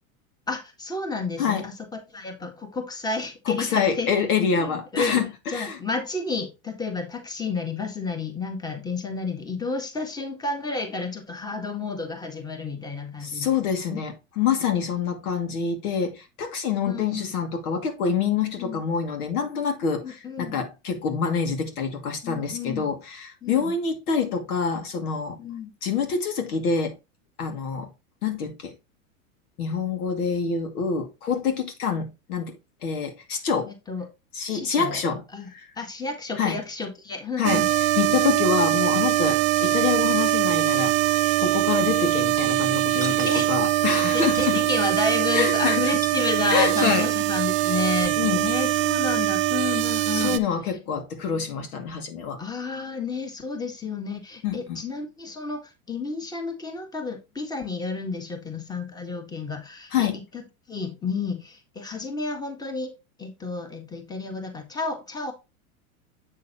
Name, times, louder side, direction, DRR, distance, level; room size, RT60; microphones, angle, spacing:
voice 1, 0.5-4.1 4.5-5.2 5.5-13.5 13.9-14.0 16.8-17.3 18.6-18.8 20.0-20.6 22.2-22.8 23.4-23.7 25.4-25.7 33.7-34.1 34.5-35.0 35.3-35.5 35.7-37.7 43.1-43.5 44.0-50.4 50.7-50.8 52.4-60.4 60.7-65.3, left 4 dB, 10° left, 1.6 m, -31 dB
voice 2, 3.5-5.8 13.2-25.4 25.8-26.9 27.4-27.9 28.2-28.7 29.6-32.6 32.8-33.7 34.3-35.2 35.5-35.7 36.4-36.6 37.4-37.7 38.0-44.6 45.3-46.0 46.5-47.0 48.2-48.4 50.1-52.4 54.4-54.8 59.9-60.2, left 6 dB, 75° left, 2.5 m, -26 dB
sound 1, 37.4-50.4, right 15 dB, 25° right, 0.7 m, -23 dB
sound 2, 42.0-42.2 42.9-43.7 44.1-44.7 44.9-45.0 45.8-47.0, right 6 dB, 10° right, 0.4 m, -39 dB
8.2 x 6.6 x 2.9 m
hypercardioid pair, 120°, 44 cm